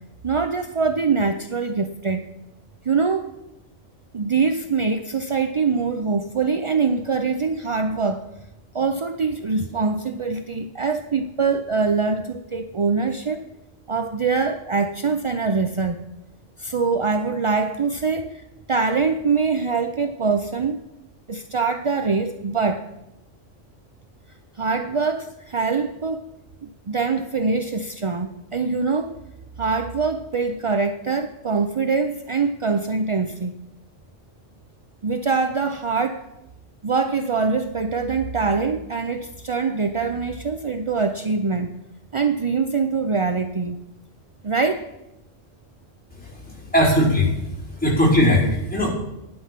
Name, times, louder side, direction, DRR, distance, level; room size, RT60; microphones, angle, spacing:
voice 1, 0.2-2.3 2.8-3.3 4.1-8.2 8.7-13.4 13.9-16.0 16.6-20.8 21.3-22.9 24.6-26.2 26.9-29.2 29.6-33.5 35.0-36.2 36.8-41.7 42.1-43.8 44.4-44.9, right 4 dB, 40° right, 8 dB, 0.4 m, -23 dB
voice 2, 46.2-47.4 47.7-48.9, left 1 dB, 5° left, -6 dB, 4.5 m, -19 dB
14.5 x 11.5 x 5.8 m, 0.92 s
omnidirectional pair, 1.3 m